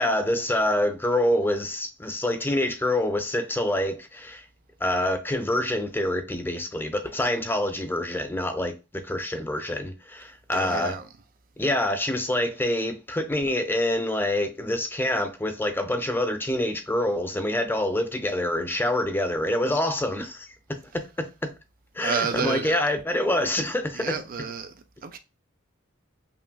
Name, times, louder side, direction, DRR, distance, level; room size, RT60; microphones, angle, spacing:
voice 1, 0.0-4.4 4.8-11.0 11.6-20.5 20.9-21.5 21.9-24.2, left 1 dB, 10° left, 0.5 m, -26 dB
voice 2, 10.5-11.0 22.0-22.8 23.9-24.7 25.0-25.2, right 6 dB, 45° right, 0.4 m, -30 dB
5.6 x 2.4 x 2.3 m
head